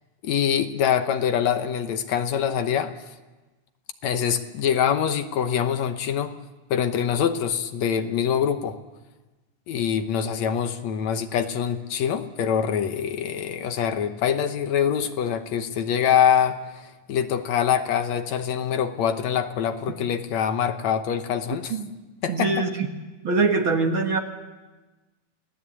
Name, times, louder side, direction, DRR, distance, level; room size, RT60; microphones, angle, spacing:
voice 1, 0.2-2.9 4.0-6.3 6.7-8.8 9.7-21.8 22.2-22.7, left 8 dB, 70° left, 8 dB, 2.2 m, -24 dB
voice 2, 22.3-22.9 23.2-24.2, right 4 dB, 50° right, 4 dB, 2.2 m, -23 dB
28.5 x 18.5 x 8.5 m, 1.2 s
omnidirectional pair, 3.5 m